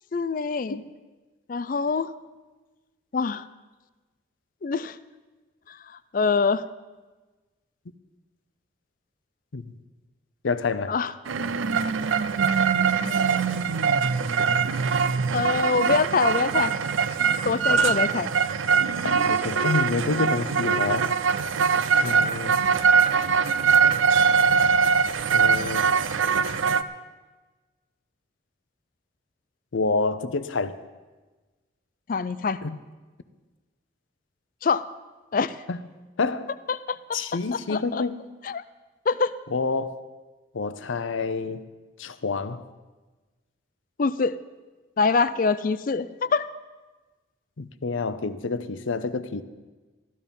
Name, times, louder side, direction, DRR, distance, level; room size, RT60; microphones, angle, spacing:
voice 1, 0.1-0.8 1.5-2.1 3.1-3.5 4.6-5.0 5.7-5.8 6.1-6.6 10.9-11.1 15.3-16.7 17.5-18.3 32.1-32.6 34.6-34.9 35.3-35.6 36.7-37.2 37.7-38.0 38.4-38.6 39.1-39.3 44.0-44.4 45.0-46.5, left 4 dB, 45° left, 0.4 m, -24 dB
voice 2, 10.4-10.9 17.7-18.0 19.0-21.1 22.0-22.6 25.3-25.9 29.7-30.7 32.6-32.8 35.7-35.8 36.2-36.5 37.1-38.2 39.5-40.0 40.5-41.6 42.0-42.7 47.6-49.4, left 4 dB, 85° left, 0.7 m, -28 dB
sound 1, 11.3-26.8, right 6 dB, 85° right, 0.5 m, -22 dB
14.5 x 12.0 x 5.4 m
head